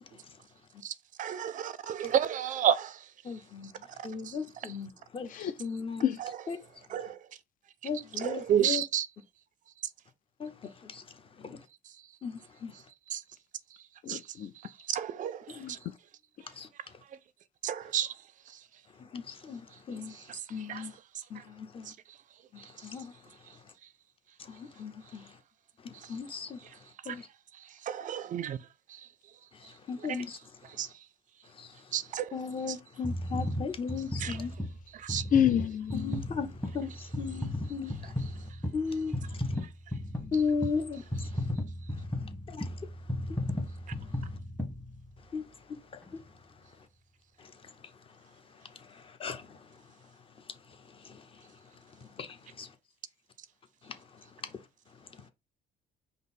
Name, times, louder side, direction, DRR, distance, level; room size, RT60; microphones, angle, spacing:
voice 1, 1.2-2.9 6.2-6.4 6.9-7.1 8.2-9.1 13.1-13.2 14.1-14.2 14.9-15.4 17.6-18.1 20.7-20.8 27.9-28.6 30.8-30.9 31.9-32.3 34.2-34.3 35.0-35.2, right 9 dB, 50° right, 0.4 m, -30 dB
voice 2, 3.2-6.1 6.5-6.6 7.8-8.8 10.4-11.2 12.2-12.7 15.5-15.8 16.5-16.7 19.0-20.2 20.5-20.9 21.3-21.9 22.5-23.2 24.4-25.4 25.8-26.6 27.0-27.3 29.5-30.4 31.5-31.9 32.3-34.5 35.9-38.1 38.7-39.5 40.3-41.4 42.5-42.8 43.3-43.4 45.3-45.4 45.7-46.2 47.4-47.7 48.6-49.8 50.5-51.5 52.0-52.7 53.8-54.6 55.2-55.3, left 5 dB, 30° left, 0.8 m, -37 dB
voice 3, 14.1-14.5 35.3-36.2, left 9 dB, 55° left, 0.4 m, -27 dB
sound 1, 33.0-45.4 46.0-46.1, left 1 dB, 10° left, 1.1 m, -35 dB
5.2 x 2.0 x 4.1 m
cardioid pair, 110°, 17 cm